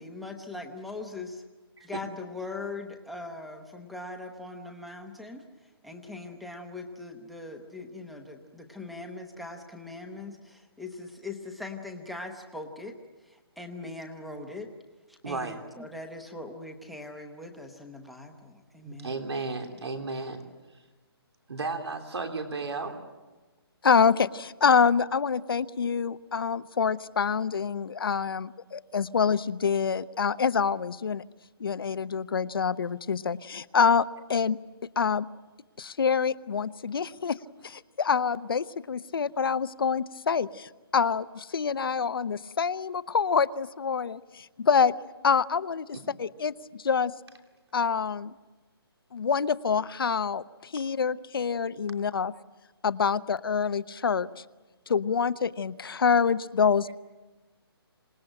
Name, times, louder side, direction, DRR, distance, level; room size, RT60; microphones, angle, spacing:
voice 1, 0.0-1.4 1.8-13.0 13.2-14.7 15.1-19.2, left 2 dB, ahead, 5 dB, 0.8 m, -41 dB
voice 2, 15.2-15.5 18.8-20.4 21.5-23.0 45.9-46.0, right 3 dB, 90° right, 4 dB, 3.2 m, -34 dB
voice 3, 23.8-31.2 31.6-34.6 35.0-35.3 35.8-37.4 37.6-44.9 45.2-45.9 46.2-46.5 46.8-47.1 47.7-48.3 49.1-52.3 52.8-54.3 54.9-56.9, left 6 dB, 60° left, 16 dB, 0.8 m, -26 dB
27.0 x 18.5 x 8.9 m, 1.2 s
hypercardioid pair, 175°, 14 cm